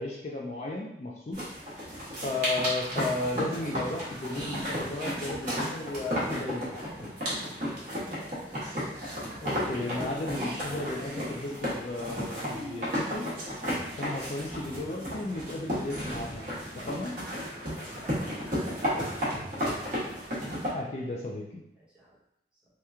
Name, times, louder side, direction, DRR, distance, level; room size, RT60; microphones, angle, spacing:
voice 1, 0.0-1.5 2.2-7.1 9.4-13.3 14.0-16.5 16.7-17.1 20.7-21.6, left 2 dB, 40° left, -2 dB, 0.3 m, -34 dB
sound 1, 1.3-20.7, equal, 45° right, 1.1 m, -33 dB
voice 2, 7.5-9.0 9.7-10.6 16.7-20.0 21.7-22.2, right 1 dB, 5° right, -9 dB, 1.0 m, -51 dB
2.9 x 2.2 x 3.5 m, 0.83 s
head